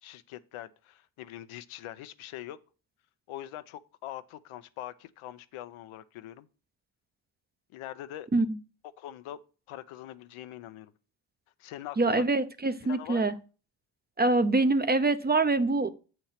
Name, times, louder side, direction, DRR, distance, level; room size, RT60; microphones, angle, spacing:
voice 1, 0.0-2.6 3.3-6.5 7.7-8.3 9.0-9.4 9.7-10.9 11.6-12.2 12.8-13.4, left 13 dB, 80° left, 0.7 m, -43 dB
voice 2, 12.0-13.3 14.2-15.9, right 3 dB, 20° right, 0.6 m, -25 dB
7.8 x 4.5 x 5.7 m
cardioid pair, 80°, 49 cm